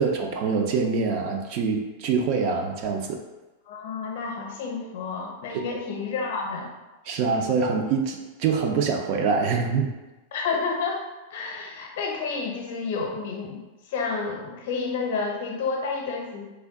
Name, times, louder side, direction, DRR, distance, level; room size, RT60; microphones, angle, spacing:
voice 1, 0.0-3.2 5.7-5.8 7.1-9.9, right 5 dB, 35° right, 3 dB, 0.4 m, -25 dB
voice 2, 3.7-6.7 10.3-11.0 11.3-13.6 13.9-16.4, left 4 dB, 55° left, 1 dB, 0.7 m, -30 dB
3.3 x 2.2 x 3.6 m, 1.1 s
supercardioid pair, 175°, 0 cm